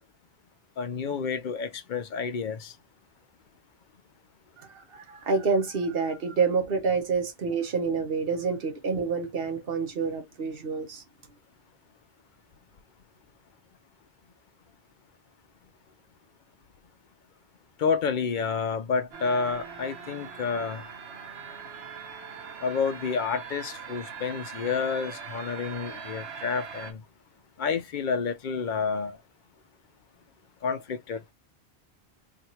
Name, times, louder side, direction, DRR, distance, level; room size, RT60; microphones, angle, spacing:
voice 1, 0.8-2.7 17.8-20.8 22.6-27.0 27.6-29.2 30.6-31.2, left 5 dB, 55° left, 0.6 m, -29 dB
voice 2, 4.9-11.0, right 5 dB, 65° right, 1.1 m, -28 dB
sound 1, 19.1-26.9, right 6 dB, 90° right, 1.1 m, -41 dB
4.6 x 2.5 x 2.8 m
omnidirectional pair, 1.0 m